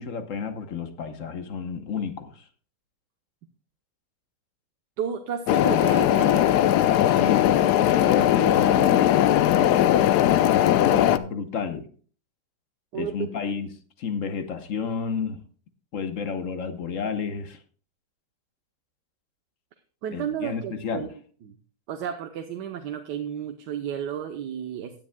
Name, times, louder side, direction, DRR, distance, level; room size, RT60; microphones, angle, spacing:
voice 1, 0.0-2.4 7.0-9.2 9.5-11.9 12.9-13.7 14.0-15.4 15.9-17.6 20.1-21.1, left 6 dB, 55° left, 8 dB, 1.2 m, -31 dB
voice 2, 5.0-6.5 12.9-13.3 20.0-21.1 21.4-21.5 21.9-25.0, right 8 dB, 90° right, 5 dB, 1.5 m, -32 dB
sound 1, 5.5-11.2, left 12 dB, 75° left, 1.1 m, -19 dB
16.5 x 10.0 x 2.2 m, 0.43 s
omnidirectional pair, 1.8 m